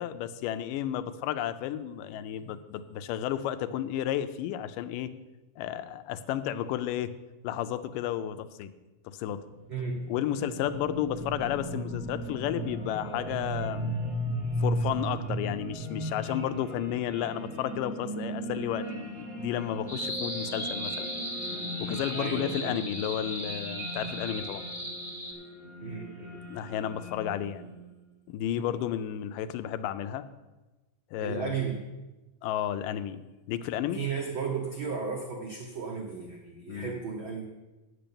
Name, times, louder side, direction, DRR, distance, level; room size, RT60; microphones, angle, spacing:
voice 1, 0.0-5.1 5.6-7.1 7.4-8.7 9.1-9.4 10.1-14.0 14.6-21.1 21.5-24.6 26.5-27.7 28.3-30.2 31.1-31.5 32.4-34.0 36.7-37.0, left 11 dB, 85° left, 11 dB, 2.2 m, -32 dB
sound 1, 9.5-27.9, right 1 dB, 90° right, 0.5 m, -37 dB
voice 2, 9.7-10.1 22.1-22.9 25.8-26.4 28.6-28.7 31.2-31.8 33.9-37.5, right 5 dB, 75° right, 1 dB, 1.1 m, -35 dB
sound 2, 19.9-25.3, equal, 5° left, 0.4 m, -37 dB
8.8 x 8.4 x 6.9 m, 1.1 s
omnidirectional pair, 3.8 m